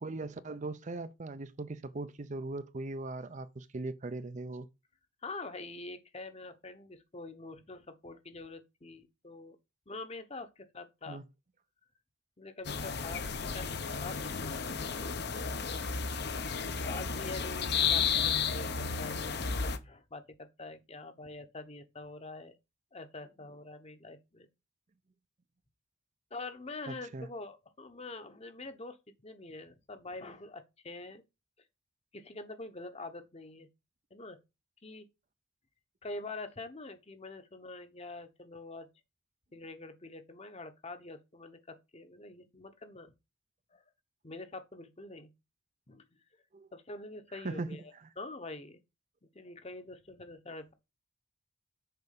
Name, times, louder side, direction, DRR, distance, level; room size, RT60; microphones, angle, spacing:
voice 1, 0.0-4.7 11.1-11.2 26.9-27.3 46.5-46.7 47.3-48.1, right 2 dB, 40° right, 0.5 m, -39 dB
voice 2, 5.2-9.6 9.9-11.2 12.4-15.1 16.8-22.5 22.9-24.5 26.3-31.2 32.1-33.7 34.1-34.4 34.8-35.1 36.0-38.9 39.5-43.1 43.7-43.8 44.2-45.3 45.9-46.1 46.7-48.8 49.3-50.7, left 2 dB, 30° left, 1.0 m, -45 dB
sound 1, 12.6-19.8, left 6 dB, 55° left, 0.9 m, -33 dB
6.9 x 4.8 x 6.6 m
head